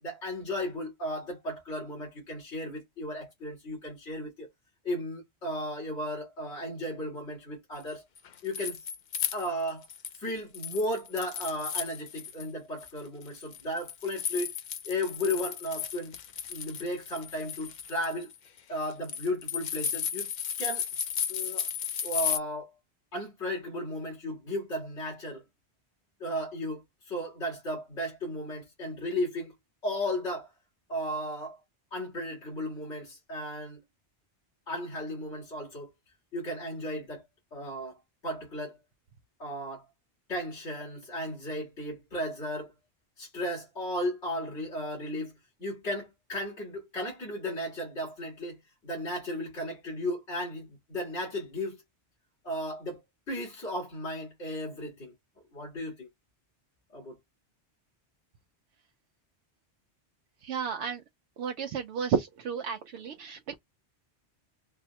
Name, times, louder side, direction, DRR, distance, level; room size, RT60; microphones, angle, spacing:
voice 1, 0.0-4.5 4.8-8.1 8.4-8.8 9.3-9.9 10.2-14.5 14.9-16.2 16.5-18.3 18.7-20.3 20.6-20.8 21.3-21.7 22.0-22.7 23.1-25.4 26.2-29.5 29.8-30.5 30.9-31.6 31.9-33.8 34.7-35.9 36.3-37.2 37.5-38.0 38.2-38.8 39.4-39.8 40.3-42.7 43.2-45.3 45.6-51.8 52.4-53.0 53.3-55.1 55.5-56.1 56.9-57.2, left 1 dB, 90° left, 2.3 m, -35 dB
sound 1, 8.2-10.2 10.5-12.5 12.8-22.4, left 8 dB, 55° left, 0.5 m, -35 dB
voice 2, 60.4-61.0 61.4-63.5, right 7 dB, 80° right, 0.9 m, -32 dB
4.6 x 2.1 x 2.8 m
omnidirectional pair, 1.2 m